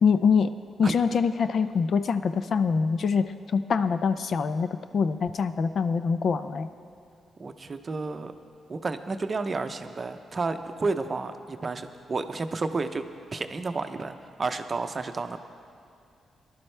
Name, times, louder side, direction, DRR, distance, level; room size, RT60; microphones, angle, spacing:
voice 1, 0.0-0.5 0.8-4.7 4.9-6.7, left 5 dB, 60° left, 11 dB, 0.5 m, -24 dB
voice 2, 7.4-8.3 8.7-13.0 13.3-15.4, right 3 dB, 35° right, 8 dB, 0.6 m, -31 dB
19.0 x 11.5 x 3.3 m, 2.5 s
cardioid pair, 100°, 0 cm